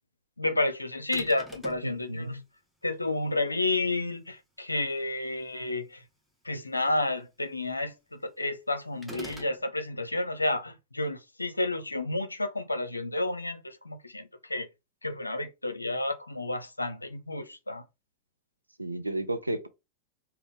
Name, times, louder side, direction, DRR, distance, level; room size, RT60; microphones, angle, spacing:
voice 1, 0.4-2.3 2.8-6.0 6.5-14.7 15.0-17.8, left 2 dB, 85° left, 0.4 m, -31 dB
sound 1, 1.1-1.9 9.0-9.6, equal, ahead, 0.9 m, -43 dB
voice 2, 1.8-2.4 18.8-19.7, right 1 dB, 85° right, 0.5 m, -32 dB
3.4 x 2.3 x 3.6 m
figure-of-eight pair, 90°, 0 cm